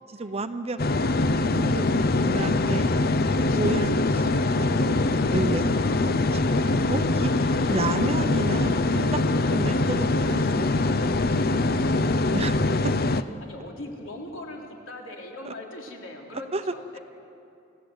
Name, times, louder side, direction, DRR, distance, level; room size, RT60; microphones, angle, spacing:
voice 1, 0.1-1.1 1.5-2.9 3.5-4.1 4.6-9.2 9.5-10.9 12.3-12.6 12.8-12.9 15.4-15.5 16.5-16.6, right 2 dB, 30° right, 10 dB, 0.8 m, -32 dB
sound 1, 0.8-13.2, left 2 dB, 50° left, 0.7 m, -23 dB
voice 2, 2.0-4.7 11.4-11.5 13.4-17.0, left 2 dB, 75° left, 0 dB, 3.7 m, -42 dB
29.0 x 16.5 x 8.2 m, 2.7 s
head